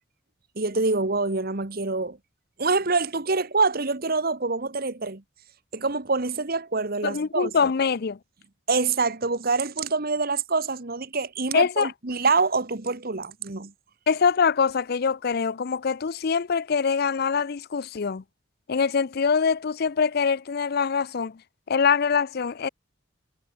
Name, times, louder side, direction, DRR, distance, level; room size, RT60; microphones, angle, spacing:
voice 1, 0.5-2.2 2.6-5.2 5.7-7.7 8.7-13.7, right 4 dB, 50° right, 1.6 m, -26 dB
voice 2, 7.0-8.2 11.5-11.9 14.1-18.2 18.7-21.4 21.7-22.7, left 6 dB, 55° left, 0.5 m, -24 dB
head